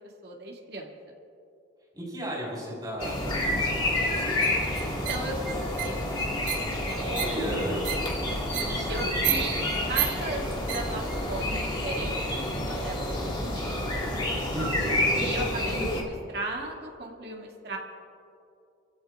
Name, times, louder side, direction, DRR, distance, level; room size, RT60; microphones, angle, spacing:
voice 1, 0.2-0.9 4.9-6.1 6.8-7.4 8.5-13.9 15.1-17.8, right 2 dB, 55° right, -1 dB, 2.4 m, -37 dB
voice 2, 1.9-4.4 7.1-7.9 8.6-9.4 14.5-15.0, equal, 20° right, -5 dB, 4.6 m, -34 dB
sound 1, 3.0-16.0, left 1 dB, 25° left, 2.0 m, -29 dB
sound 2, 4.4-11.1, right 10 dB, 80° right, 2.6 m, -34 dB
28.5 x 16.0 x 2.5 m, 2.7 s
head